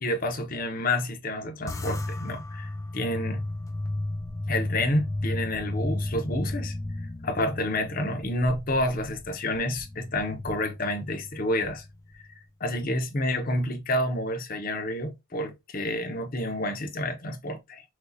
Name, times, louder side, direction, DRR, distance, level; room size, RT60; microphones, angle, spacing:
voice 1, 0.0-3.4 4.5-6.7 7.2-11.8 12.6-17.8, left 1 dB, 40° left, 0.8 m, -29 dB
sound 1, 1.7-12.3, left 1 dB, 15° left, 0.4 m, -34 dB
6.1 x 2.4 x 2.7 m
head